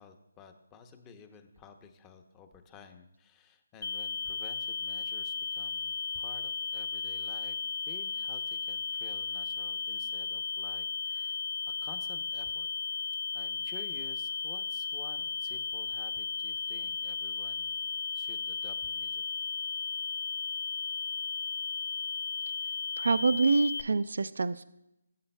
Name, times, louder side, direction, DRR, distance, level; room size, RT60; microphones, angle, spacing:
voice 1, 0.0-7.6 7.9-11.4 11.8-19.4, left 6 dB, 15° left, 8 dB, 0.7 m, -53 dB
sound 1, 3.8-23.8, left 5 dB, 60° left, 0.5 m, -35 dB
voice 2, 23.0-24.6, right 3 dB, 70° right, 13 dB, 0.3 m, -26 dB
16.5 x 8.1 x 2.2 m, 0.86 s
figure-of-eight pair, 160°, 0 cm